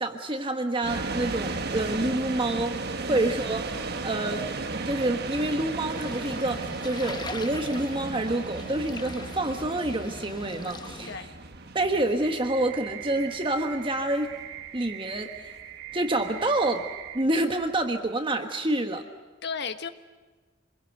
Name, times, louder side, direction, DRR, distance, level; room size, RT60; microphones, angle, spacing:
voice 1, 0.0-2.8 3.1-3.6 4.0-4.5 4.8-11.1 11.7-14.4 14.7-15.5 15.9-16.9 17.1-19.0, right 2 dB, 25° right, 5 dB, 1.3 m, -27 dB
sound 1, 0.8-17.8, right 3 dB, 55° right, 1.3 m, -36 dB
sound 2, 5.9-11.2, left 3 dB, 20° left, 1.1 m, -42 dB
sound 3, 12.2-17.2, right 12 dB, 80° right, 1.6 m, -41 dB
voice 2, 19.4-19.9, left 5 dB, 60° left, 9 dB, 1.3 m, -34 dB
27.0 x 21.0 x 8.0 m, 1.3 s
head